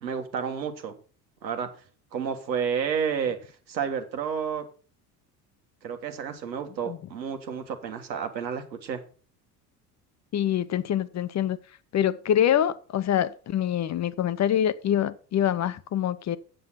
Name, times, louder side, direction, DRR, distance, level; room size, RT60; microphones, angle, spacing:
voice 1, 0.0-0.9 1.4-1.7 2.1-3.4 3.7-4.6 5.8-9.0, right 7 dB, 85° right, 1.6 m, -30 dB
voice 2, 10.3-11.6 11.9-16.4, left 10 dB, 35° left, 0.8 m, -25 dB
7.8 x 7.8 x 5.7 m
hypercardioid pair, 70°, 49 cm